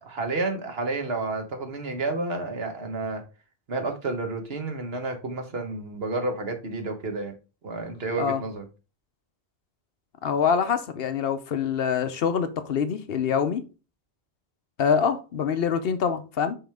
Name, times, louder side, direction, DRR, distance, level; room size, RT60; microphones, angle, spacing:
voice 1, 0.0-3.2 3.7-7.3 7.6-8.6, right 3 dB, 65° right, 1.4 m, -30 dB
voice 2, 10.2-13.6 14.8-16.6, left 7 dB, 65° left, 0.9 m, -25 dB
5.8 x 5.1 x 3.4 m
omnidirectional pair, 1.1 m